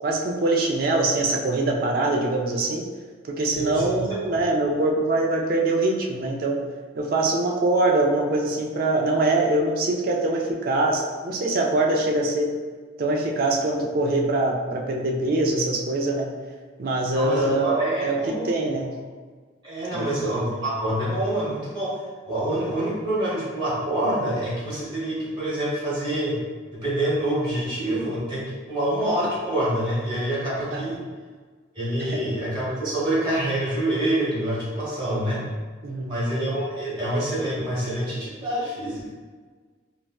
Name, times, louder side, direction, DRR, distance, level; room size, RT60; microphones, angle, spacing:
voice 1, 0.0-2.9 3.3-6.6 7.0-12.5 13.0-16.3 16.8-18.9 19.9-20.1 30.7-30.9 32.1-32.2 35.8-36.2, right 2 dB, 50° right, 1 dB, 0.4 m, -23 dB
voice 2, 3.5-4.0 17.1-18.4 19.6-22.0 22.3-26.4 26.7-31.0 31.7-35.4 36.1-39.1, right 1 dB, 25° right, -8 dB, 1.0 m, -26 dB
3.9 x 2.1 x 2.3 m, 1.5 s
head